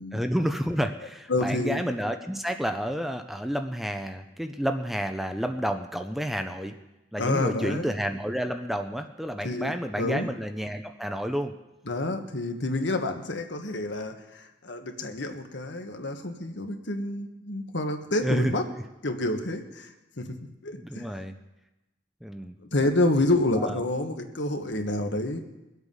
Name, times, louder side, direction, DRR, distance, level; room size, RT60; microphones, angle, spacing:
voice 1, 0.1-6.7 7.1-11.5 18.2-18.5 20.8-21.4 22.2-22.6 23.6-23.8, equal, ahead, 6 dB, 0.6 m, -30 dB
voice 2, 1.3-1.8 7.2-7.9 9.4-10.3 11.9-18.6 19.0-20.4 20.6-21.1 22.6-25.4, left 2 dB, 75° left, 5 dB, 1.5 m, -28 dB
22.5 x 8.2 x 5.5 m, 1.0 s
head